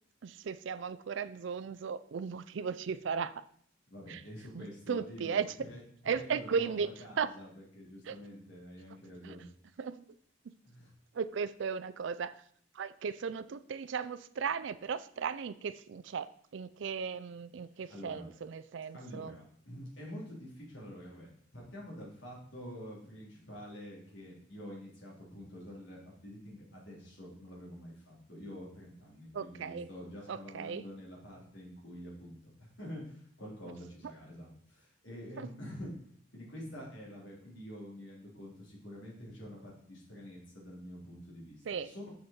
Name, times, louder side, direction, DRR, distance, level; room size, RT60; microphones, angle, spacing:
voice 1, 0.2-3.4 4.1-4.2 4.5-5.5 6.1-6.9 7.2-7.3 8.1-8.2 9.2-9.4 9.8-10.0 11.1-12.4 12.7-19.4 29.3-29.9 30.3-30.8 35.4-35.5 41.7-41.9, right 6 dB, 65° right, 15 dB, 0.4 m, -36 dB
voice 2, 3.9-9.4 10.6-10.9 17.9-18.3 18.9-21.3 21.5-35.9 36.3-42.1, equal, 65° left, -4 dB, 3.3 m, -47 dB
7.1 x 6.5 x 4.3 m, 0.62 s
head